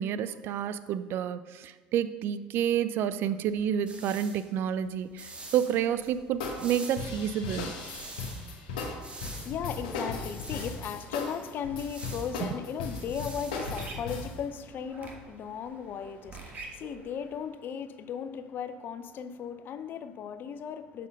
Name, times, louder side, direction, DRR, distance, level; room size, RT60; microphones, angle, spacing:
voice 1, 0.0-7.7 12.4-12.5, right 9 dB, 60° right, 0.4 m, -29 dB
sound 1, 3.4-14.4, right 2 dB, 25° right, 1.2 m, -48 dB
sound 2, 6.4-14.4, left 3 dB, 85° left, 1.1 m, -37 dB
voice 2, 9.2-21.1, left 8 dB, 50° left, 0.5 m, -37 dB
sound 3, 12.5-17.4, right 3 dB, 40° right, 1.4 m, -47 dB
6.5 x 4.2 x 5.2 m
hypercardioid pair, 75°, 4 cm